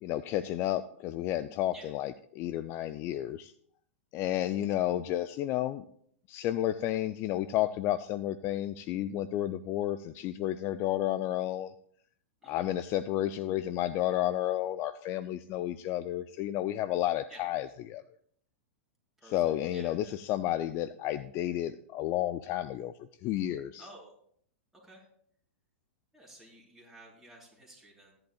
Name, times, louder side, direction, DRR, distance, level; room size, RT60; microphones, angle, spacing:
voice 1, 0.0-3.5 4.1-5.8 6.3-11.7 12.4-18.0 19.3-23.8, left 13 dB, 40° left, 13 dB, 0.4 m, -31 dB
voice 2, 19.2-20.2 23.8-24.1 24.8-25.1 26.1-28.1, right 1 dB, 5° right, -5 dB, 4.5 m, -53 dB
15.5 x 10.5 x 2.4 m, 0.63 s
hypercardioid pair, 110°, 7 cm